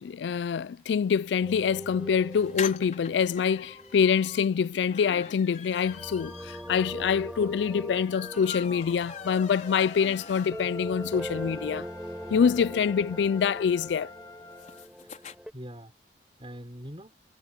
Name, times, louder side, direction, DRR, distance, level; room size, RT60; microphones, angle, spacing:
voice 1, 0.0-11.9 12.3-14.1, left 7 dB, 80° left, 0.3 m, -25 dB
sound 1, 1.4-15.5, equal, 5° right, 4.2 m, -42 dB
sound 2, 2.3-10.9 11.3-11.4 11.6-11.7 12.0-15.4, left 6 dB, 45° left, 5.4 m, -43 dB
sound 3, 9.1-14.9, left 2 dB, 20° left, 2.3 m, -48 dB
voice 2, 14.6-15.9 16.4-17.2, equal, 30° right, 5.5 m, -44 dB
head